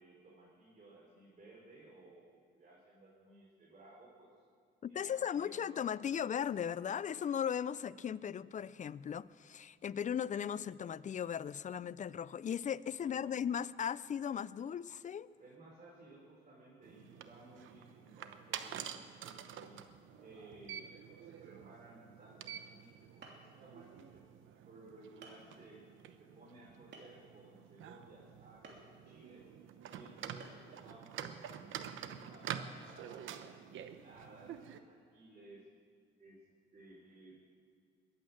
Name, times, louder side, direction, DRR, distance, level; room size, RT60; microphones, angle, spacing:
voice 1, 0.0-4.3 4.9-5.9 13.0-13.5 15.4-19.8 20.2-24.2 24.6-25.8 26.2-29.5 29.9-35.6 36.2-36.4 36.7-37.4, right 2 dB, 40° right, 4.2 m, -58 dB
voice 2, 4.8-15.3, left 8 dB, 40° left, 0.4 m, -37 dB
sound 1, 16.8-34.8, right 9 dB, 80° right, 0.9 m, -48 dB
sound 2, 23.2-23.6 24.4-24.5 25.2-25.5 26.9-27.3 28.6-28.9 30.4-30.7, right 3 dB, 60° right, 3.1 m, -54 dB
21.0 x 8.6 x 7.4 m
cardioid pair, 90°, 20 cm